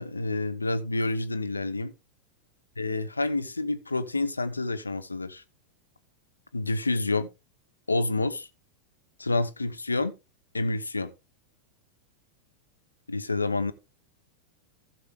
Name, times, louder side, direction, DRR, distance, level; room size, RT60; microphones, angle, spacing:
voice 1, 0.0-1.9 2.8-5.4 6.5-7.3 7.9-8.5 9.2-10.1 10.5-11.1 13.1-13.7, left 2 dB, 80° left, 1.0 m, -28 dB
15.0 x 6.9 x 3.6 m
figure-of-eight pair, 90°, 0 cm